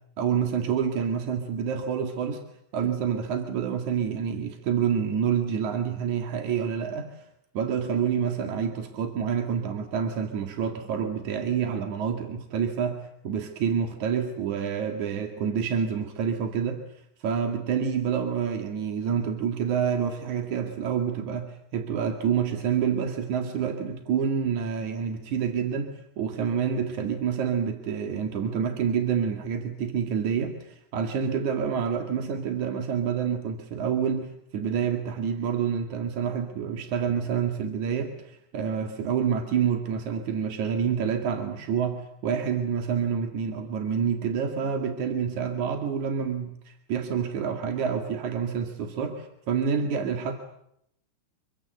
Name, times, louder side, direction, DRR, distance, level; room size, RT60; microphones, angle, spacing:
voice 1, 0.2-2.4 2.7-7.2 7.5-16.8 17.2-50.3, right 7 dB, 50° right, 5 dB, 2.5 m, -28 dB
26.5 x 24.0 x 8.0 m, 0.73 s
omnidirectional pair, 6.0 m